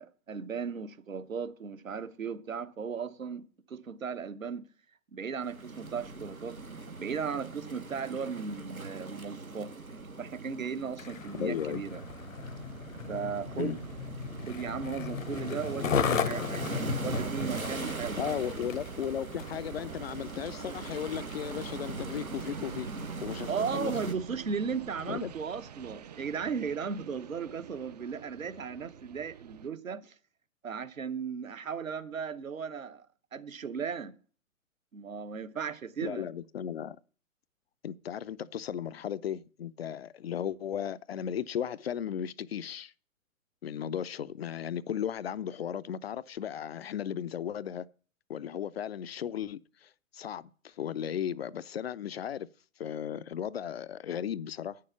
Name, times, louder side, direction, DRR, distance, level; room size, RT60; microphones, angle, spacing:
voice 1, 0.0-4.7 5.1-6.6 7.0-9.7 10.2-12.0 13.1-13.8 14.5-18.4 23.5-30.1 30.6-33.1 33.3-34.2 34.9-36.3, right 6 dB, 75° right, 1.1 m, -36 dB
sound 1, 5.4-24.1, right 3 dB, 90° right, 1.3 m, -41 dB
Skateboard, 10.8-19.7 20.3-20.4, left 7 dB, 70° left, 0.9 m, -35 dB
sound 2, 10.9-29.7, right 8 dB, 30° right, 0.4 m, -46 dB
voice 2, 11.4-11.8 13.6-13.8 18.2-22.9 23.2-23.9 25.1-25.3 36.0-37.0 37.8-42.9 43.6-47.9 48.3-52.5 52.8-54.8, left 9 dB, 50° left, 0.4 m, -35 dB
9.5 x 6.6 x 6.9 m
figure-of-eight pair, 115°, 41 cm